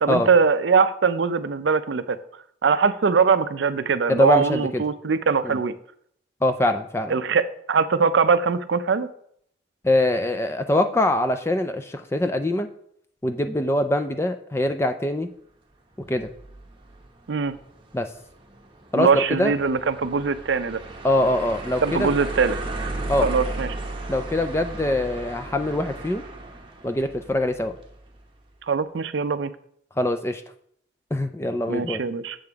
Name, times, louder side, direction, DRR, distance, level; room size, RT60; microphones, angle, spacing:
voice 1, 0.0-2.2 2.6-5.7 7.1-9.1 17.3-17.5 19.0-20.8 21.8-22.6 23.2-23.7 28.7-29.5 31.7-32.4, right 5 dB, 70° right, 12 dB, 0.5 m, -21 dB
voice 2, 4.1-4.8 5.4-5.6 6.4-7.1 9.8-12.7 13.2-15.3 16.1-16.3 17.9-18.1 18.9-19.5 21.0-22.2 23.1-23.3 24.1-26.2 26.8-27.7 30.0-30.4 31.1-32.0, left 1 dB, 15° left, 8 dB, 0.4 m, -23 dB
sound 1, 16.1-28.2, right 2 dB, 25° right, 0.9 m, -35 dB
7.7 x 6.8 x 3.5 m, 0.67 s
head